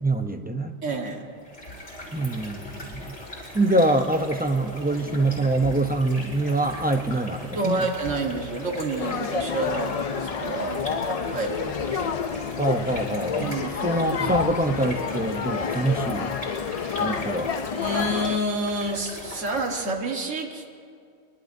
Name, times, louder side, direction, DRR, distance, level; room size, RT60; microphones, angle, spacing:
voice 1, 0.0-0.8 2.1-3.1 3.5-7.9 12.6-13.6 13.8-16.3 17.0-17.5, right 2 dB, 10° right, 5 dB, 0.5 m, -25 dB
voice 2, 0.8-1.4 7.5-12.0 13.4-14.0 16.7-17.1 17.8-20.7, right 2 dB, 85° right, 2 dB, 1.8 m, -29 dB
sound 1, 1.4-20.0, left 1 dB, 75° left, 4.6 m, -40 dB
sound 2, 9.0-18.4, left 6 dB, 55° left, 0.4 m, -29 dB
24.0 x 22.5 x 2.7 m, 2.3 s
omnidirectional pair, 1.2 m